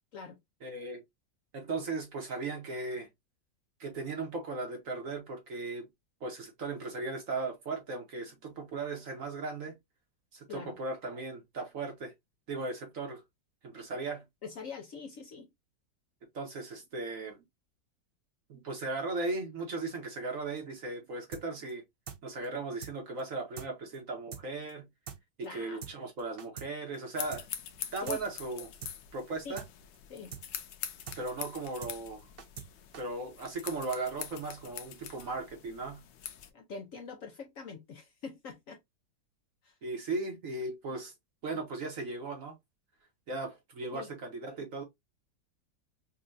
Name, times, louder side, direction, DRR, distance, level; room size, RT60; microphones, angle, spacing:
voice 1, 0.6-1.0 1.5-3.1 3.8-5.9 6.2-9.7 10.3-12.1 12.5-13.2 13.6-14.2 16.3-17.4 18.5-21.8 22.2-24.9 25.5-27.5 27.9-28.7 29.1-29.6 31.2-32.2 33.0-36.0 39.8-41.1 41.4-42.6 43.3-44.8, right 3 dB, 55° right, 1.3 m, -37 dB
voice 2, 14.4-15.5 25.4-25.9 28.0-28.2 29.4-29.6 30.1-30.3 36.5-38.8 39.6-39.8 43.9-44.1, left 5 dB, 60° left, 1.0 m, -44 dB
sound 1, 21.3-21.4 21.7-21.8 22.1-22.2 22.4-22.5 22.8-22.9 23.2-23.3 23.6-23.7 23.9-24.0 24.3-24.4 24.7-24.8 25.1-25.2 25.4-25.5 25.8-25.9 26.2-26.7 26.9-27.0 27.3-27.4 27.7-27.8 28.1-28.2 28.4-28.5 28.8-28.9 29.2-29.3 29.6-29.7 29.9-30.0 30.3-30.4 30.7-30.8 31.1-31.2 31.4-31.5 31.8-32.7 32.9-33.0, right 8 dB, 85° right, 0.5 m, -43 dB
sound 2, 27.1-36.5, left 10 dB, 85° left, 1.3 m, -44 dB
5.4 x 2.4 x 2.5 m
omnidirectional pair, 1.9 m